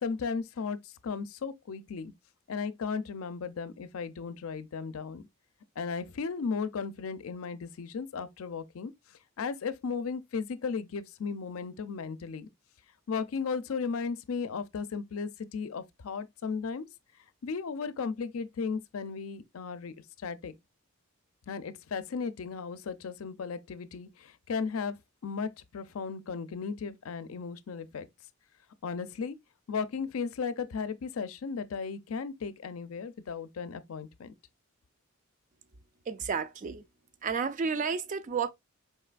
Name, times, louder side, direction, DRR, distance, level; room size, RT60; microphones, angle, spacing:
voice 1, 0.0-2.1 2.5-5.2 5.8-8.9 9.4-12.5 13.1-16.9 17.4-20.6 21.5-25.0 25.2-28.1 28.8-29.4 29.7-34.3, left 5 dB, 80° left, 0.5 m, -35 dB
voice 2, 36.1-36.8 37.2-38.5, right 5 dB, 40° right, 0.4 m, -31 dB
4.5 x 3.3 x 2.2 m
head